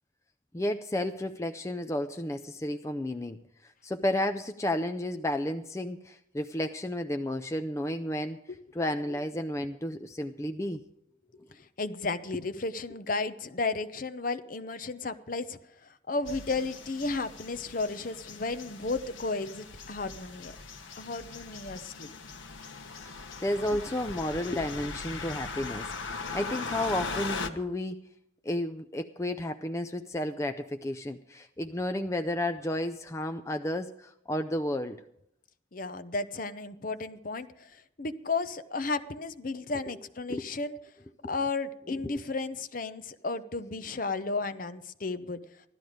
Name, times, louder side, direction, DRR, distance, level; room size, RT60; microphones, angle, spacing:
voice 1, 0.5-8.4 8.7-10.8 11.4-11.5 23.1-28.0 28.4-35.0 40.3-40.5 41.2-41.3 42.0-42.1, left 1 dB, 15° left, 8 dB, 0.4 m, -32 dB
voice 2, 11.5-20.5 21.0-22.1 35.7-40.8 41.2-45.4, left 3 dB, 45° left, 11 dB, 0.7 m, -33 dB
sound 1, 16.3-27.5, left 4 dB, 90° left, 1.2 m, -40 dB
15.5 x 12.5 x 5.0 m, 0.75 s
head